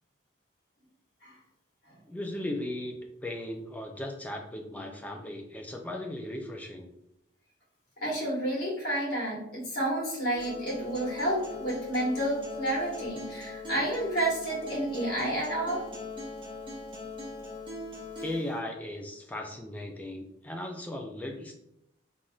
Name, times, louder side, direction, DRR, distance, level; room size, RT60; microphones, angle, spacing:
voice 1, 2.0-6.9 18.2-21.5, left 1 dB, 10° left, 2 dB, 0.3 m, -37 dB
voice 2, 8.0-15.9 18.1-18.2, right 1 dB, 50° left, -6 dB, 1.4 m, -30 dB
Acoustic guitar, 10.3-18.4, left 2 dB, 25° right, 0.7 m, -40 dB
3.3 x 2.6 x 2.3 m, 0.80 s
head